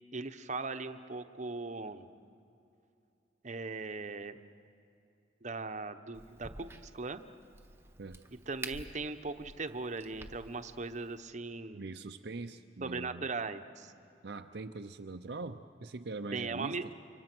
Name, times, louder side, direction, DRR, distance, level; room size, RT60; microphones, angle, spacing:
voice 1, 0.1-2.1 3.4-4.4 5.4-7.2 8.5-11.9 12.8-13.9 16.3-16.9, right 3 dB, 40° right, 9 dB, 0.9 m, -39 dB
Crack, 6.1-11.2, right 2 dB, 15° right, 1.1 m, -50 dB
voice 2, 11.7-13.3 14.2-16.9, right 3 dB, 60° right, 6 dB, 0.6 m, -42 dB
29.5 x 25.0 x 6.1 m, 2.7 s
head